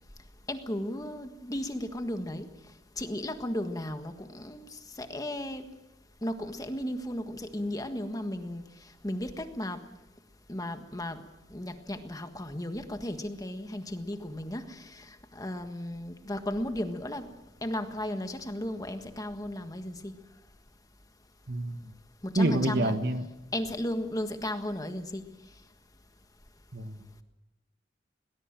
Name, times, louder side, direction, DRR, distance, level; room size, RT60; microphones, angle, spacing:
voice 1, 0.5-2.5 3.0-4.7 5.0-5.7 6.2-8.6 9.0-9.8 10.5-11.2 11.5-17.3 17.6-20.1 22.2-23.0 23.5-25.2, left 1 dB, 20° left, 7 dB, 1.5 m, -35 dB
voice 2, 21.5-21.8 22.4-23.3 26.7-27.0, right 1 dB, 60° right, 8 dB, 1.6 m, -27 dB
22.0 x 19.0 x 7.5 m, 0.97 s
head